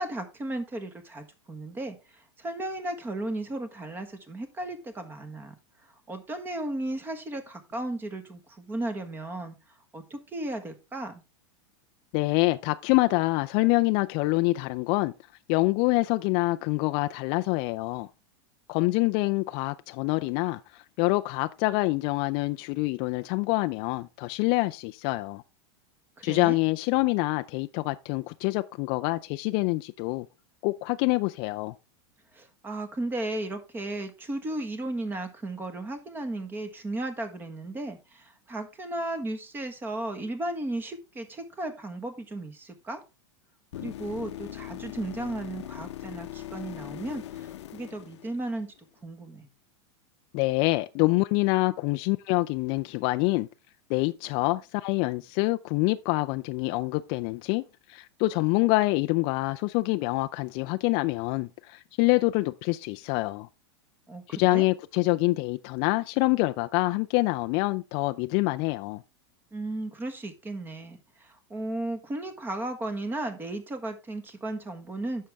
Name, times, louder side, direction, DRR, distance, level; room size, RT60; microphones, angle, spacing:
voice 1, 0.0-5.5 5.8-11.2 26.2-26.6 32.3-43.0 43.8-48.7 49.0-49.5 64.1-64.7 69.5-75.3, right 1 dB, 15° right, 1.4 m, -35 dB
voice 2, 12.1-15.1 15.5-18.1 18.7-25.4 26.2-30.3 30.6-31.7 50.3-53.5 53.9-63.5 64.3-69.0, left 22 dB, 40° left, 0.4 m, -26 dB
sound 1, 43.7-48.8 52.8-52.9, left 13 dB, 90° left, 0.8 m, -40 dB
10.0 x 6.4 x 3.5 m
supercardioid pair, 150°, 14 cm